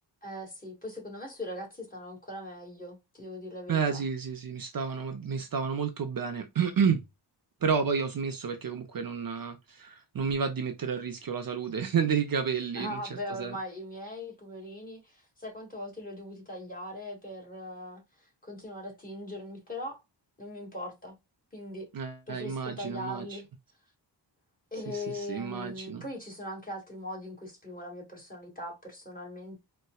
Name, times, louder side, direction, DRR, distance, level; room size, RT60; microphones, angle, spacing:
voice 1, 0.2-4.0 12.7-20.0 20.4-21.2 21.5-21.9 22.3-23.5 24.7-29.6, left 1 dB, 20° left, 1.8 m, -40 dB
voice 2, 3.7-7.0 7.6-13.0 13.4-13.6 21.9-23.4 24.9-26.0, right 6 dB, 55° right, 0.6 m, -30 dB
4.1 x 2.2 x 2.2 m
wide cardioid pair, 100°, 43 cm